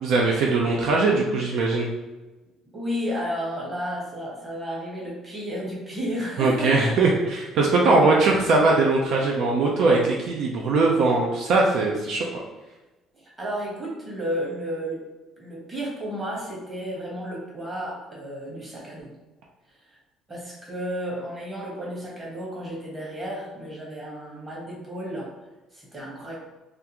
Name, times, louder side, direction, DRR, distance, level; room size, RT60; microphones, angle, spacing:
voice 1, 0.0-1.9 6.4-12.3, right 3 dB, 70° right, -2 dB, 0.5 m, -21 dB
voice 2, 2.7-7.0 7.9-8.2 13.1-15.0 15.4-19.1 19.8-20.0 20.3-25.3 25.7-26.4, equal, 20° right, -4 dB, 1.3 m, -32 dB
3.5 x 2.5 x 2.9 m, 1.1 s
cardioid pair, 120°, 0 cm